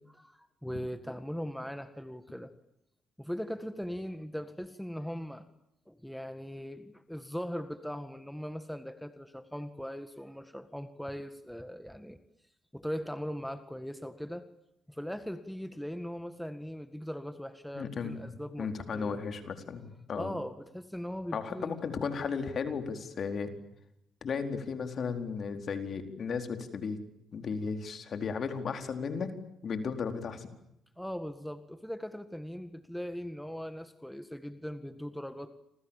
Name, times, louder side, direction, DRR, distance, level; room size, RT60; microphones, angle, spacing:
voice 1, 0.0-2.5 3.2-5.4 5.9-12.2 12.7-14.5 14.9-19.2 20.2-21.8 31.0-35.5, equal, ahead, 10 dB, 1.8 m, -40 dB
voice 2, 17.7-18.3 18.6-20.3 21.3-23.5 24.2-27.0 27.3-29.3 29.6-30.5, left 5 dB, 55° left, 6 dB, 4.4 m, -35 dB
29.0 x 27.0 x 7.4 m, 0.82 s
cardioid pair, 90°, 0 cm